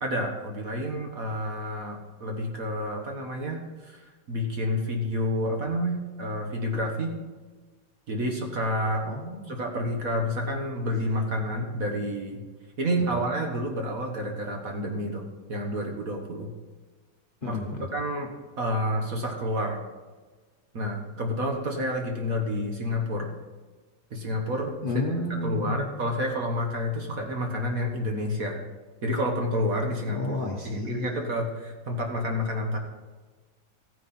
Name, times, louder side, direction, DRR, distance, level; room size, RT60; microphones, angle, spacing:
voice 1, 0.0-4.0 4.3-7.1 8.1-9.0 9.5-12.4 12.8-16.5 17.5-17.6 17.9-18.3 18.6-19.8 20.7-23.3 24.1-25.1 25.4-28.6 29.0-30.2 30.6-32.8, equal, 45° right, 2 dB, 1.6 m, -29 dB
voice 2, 9.0-9.5 13.1-13.3 17.4-17.9 24.8-25.9 30.1-31.3, left 2 dB, 30° left, 0 dB, 1.1 m, -31 dB
14.0 x 9.2 x 4.3 m, 1.3 s
omnidirectional pair, 2.2 m